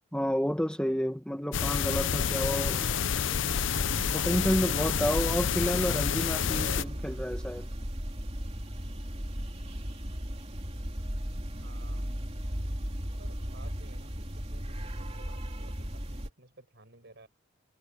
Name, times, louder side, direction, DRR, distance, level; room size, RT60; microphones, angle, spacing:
voice 1, 0.1-2.8 4.1-7.7, equal, 5° left, 1.4 m, -30 dB
sound 1, 1.5-6.8, left 7 dB, 70° left, 0.6 m, -29 dB
voice 2, 2.1-3.7 11.5-12.1 13.2-17.3, right 2 dB, 60° right, 6.8 m, -53 dB
sound 2, 3.5-16.3, equal, 30° right, 3.1 m, -36 dB
head